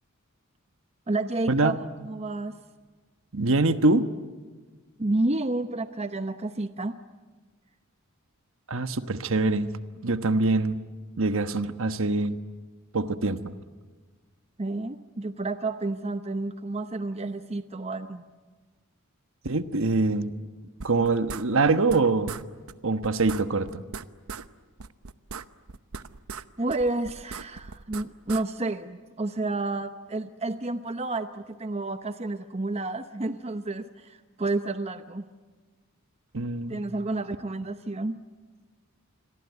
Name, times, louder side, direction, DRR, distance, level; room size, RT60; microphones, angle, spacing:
voice 1, 1.1-2.6 5.0-7.0 14.6-18.3 26.6-35.2 36.7-38.2, right 2 dB, 30° right, 10 dB, 0.8 m, -30 dB
voice 2, 3.3-4.1 8.7-9.7 10.0-10.8 11.2-12.4 12.9-13.5 19.4-20.3 20.8-22.3 22.8-23.8 36.3-36.8, right 3 dB, 65° right, 10 dB, 1.3 m, -24 dB
sound 1, 20.8-22.0 22.3-22.4 22.7-22.8 23.0-24.5 24.8-26.4 26.7-28.4, right 5 dB, 80° right, 0.9 m, -39 dB
28.0 x 22.0 x 9.5 m, 1.4 s
head